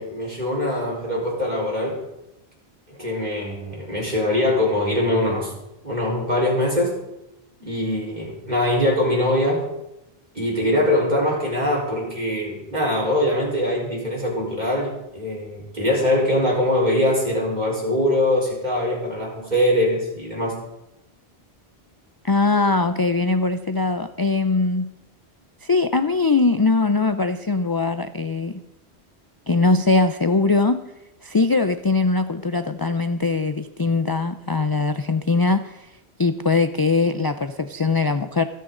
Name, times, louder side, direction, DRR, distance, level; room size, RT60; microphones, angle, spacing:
voice 1, 0.0-2.0 2.9-5.5 5.8-6.9 7.6-9.6 10.3-20.6, left 1 dB, 40° right, -3 dB, 4.5 m, -22 dB
voice 2, 22.2-24.9 25.6-28.6 29.5-30.8 31.2-35.9 36.2-38.4, left 3 dB, 30° left, 10 dB, 0.4 m, -21 dB
26.5 x 9.2 x 3.8 m, 0.89 s
omnidirectional pair, 1.1 m